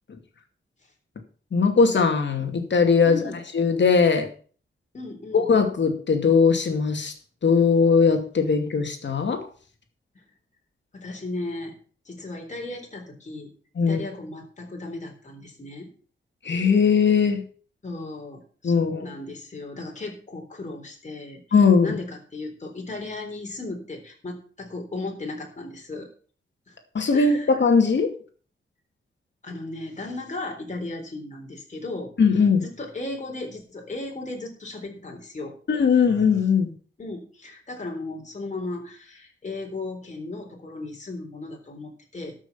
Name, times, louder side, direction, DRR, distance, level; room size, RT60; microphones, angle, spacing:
voice 1, 1.5-3.2 3.5-4.3 5.3-7.1 7.4-9.5 13.8-14.0 16.4-17.4 18.6-19.1 21.5-21.9 26.9-28.1 32.2-32.7 35.7-36.7, left 5 dB, 60° left, 6 dB, 2.4 m, -20 dB
voice 2, 3.0-3.4 4.9-5.5 10.9-11.8 12.1-13.5 13.9-15.9 17.8-21.4 21.8-26.1 26.7-26.8 27.1-27.5 29.4-32.1 32.8-35.5 37.0-42.3, left 2 dB, 35° left, 1 dB, 3.8 m, -36 dB
13.0 x 6.3 x 7.0 m, 0.42 s
wide cardioid pair, 120°, 21 cm